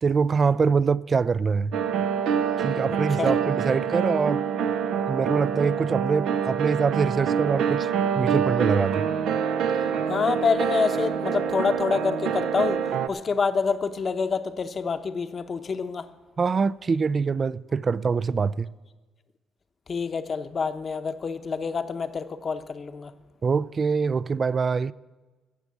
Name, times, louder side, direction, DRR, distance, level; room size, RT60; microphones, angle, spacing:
voice 1, 0.0-1.8 2.6-4.4 4.9-7.9 8.2-9.1 16.4-18.7 23.4-24.9, right 5 dB, 40° right, 0.3 m, -24 dB
sound 1, 1.7-13.1, right 7 dB, 85° right, 0.6 m, -26 dB
voice 2, 2.9-3.4 10.1-16.1 19.9-23.1, left 5 dB, 45° left, 0.8 m, -27 dB
15.5 x 5.9 x 8.4 m
cardioid pair, 90°, 0 cm